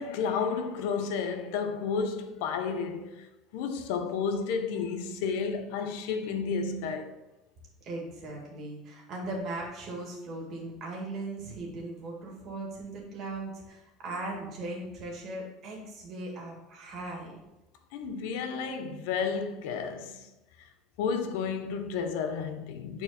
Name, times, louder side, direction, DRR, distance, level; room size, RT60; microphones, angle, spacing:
voice 1, 0.0-3.3 3.5-7.1 17.9-20.3 21.0-23.0, left 5 dB, 75° left, 0.8 m, -32 dB
voice 2, 7.8-17.4, right 2 dB, 35° right, 2.1 m, -38 dB
9.3 x 4.5 x 4.3 m
cardioid pair, 165°, 0 cm